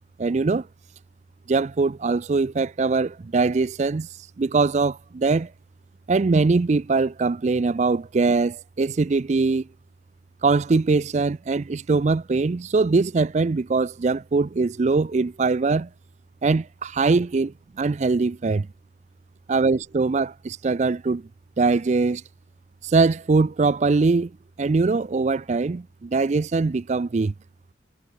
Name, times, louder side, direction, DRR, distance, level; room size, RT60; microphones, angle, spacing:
voice 1, 0.2-0.7 1.5-4.1 4.4-5.5 6.1-9.7 10.4-15.9 16.4-18.7 19.5-21.2 21.6-22.2 22.8-24.3 24.6-27.3, right 3 dB, 40° right, 0.4 m, -22 dB
head